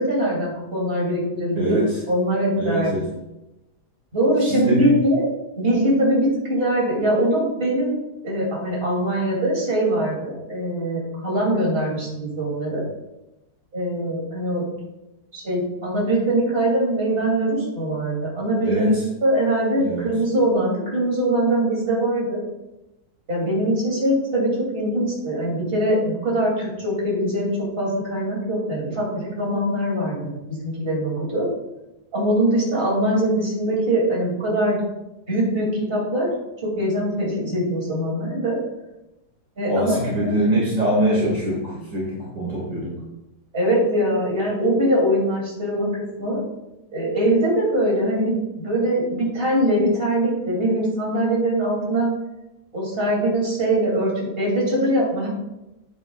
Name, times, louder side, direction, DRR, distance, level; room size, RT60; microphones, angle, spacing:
voice 1, 0.0-2.9 4.1-5.2 5.6-8.0 8.2-12.8 13.7-14.7 15.3-18.9 19.2-22.4 23.3-27.5 27.8-31.5 32.1-34.8 35.3-36.3 36.6-38.6 39.6-40.3 43.5-46.4 46.9-52.1 52.7-55.3, right 1 dB, 35° right, -4 dB, 3.0 m, -22 dB
voice 2, 1.6-2.0 2.6-3.1 4.4-4.9 18.6-19.1 19.8-20.1 39.6-43.0, right 1 dB, 50° right, -6 dB, 2.6 m, -23 dB
9.5 x 8.8 x 2.4 m, 0.95 s
omnidirectional pair, 1.7 m